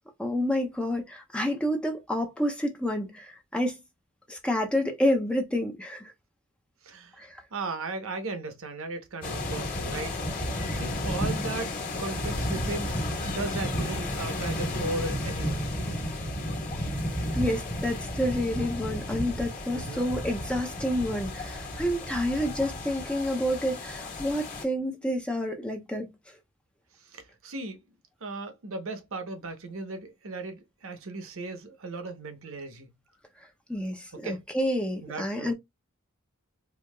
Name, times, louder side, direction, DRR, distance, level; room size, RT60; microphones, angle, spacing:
voice 1, 0.2-3.8 4.3-6.1 7.2-7.4 17.3-26.1 33.7-35.5, equal, 5° left, 0.5 m, -29 dB
voice 2, 6.8-10.2 10.7-11.7 12.0-15.7 19.7-20.1 27.1-27.8 28.2-32.9 34.1-34.4 35.0-35.5, right 2 dB, 65° right, 0.9 m, -36 dB
sound 1, 9.2-24.6, left 1 dB, 40° left, 1.3 m, -32 dB
4.5 x 2.7 x 2.2 m
head